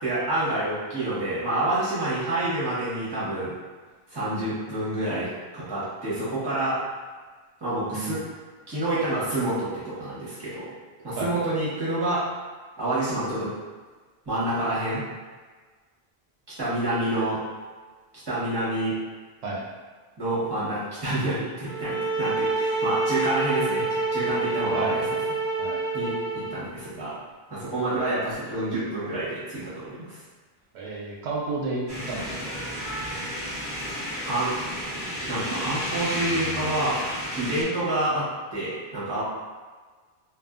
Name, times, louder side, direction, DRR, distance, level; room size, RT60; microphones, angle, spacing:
voice 1, 0.0-3.5 4.1-6.8 7.6-8.2 8.7-10.7 11.0-12.2 12.8-13.5 14.3-15.0 16.6-17.4 18.3-18.9 20.2-23.8 24.1-25.0 25.9-27.1 27.5-30.2 34.2-34.5 35.3-37.0 37.3-38.3 38.5-39.2, right 1 dB, 25° right, -10 dB, 1.0 m, -28 dB
voice 2, 7.9-8.2 11.2-11.3 19.4-19.6 24.7-24.9 25.6-25.8 30.7-32.5, right 3 dB, 85° right, -3 dB, 0.8 m, -31 dB
sound 1, 21.7-26.6, right 3 dB, 40° left, 0.4 m, -27 dB
sound 2, 31.9-37.6, equal, 25° left, 0.8 m, -32 dB
2.6 x 2.4 x 2.3 m, 1.4 s
omnidirectional pair, 1.1 m